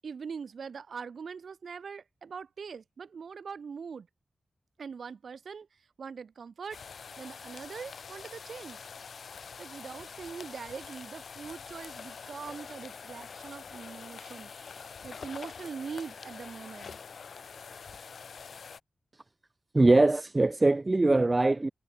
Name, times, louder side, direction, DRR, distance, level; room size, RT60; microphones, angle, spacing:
voice 1, 0.0-4.1 4.8-5.7 6.0-6.8 7.2-8.8 9.6-17.0, right 6 dB, 70° right, 7.5 m, -42 dB
sound 1, 6.7-18.8, left 6 dB, 75° left, 3.6 m, -45 dB
voice 2, 19.7-21.7, right 2 dB, 25° right, 3.0 m, -22 dB
wide cardioid pair, 120°, 0 cm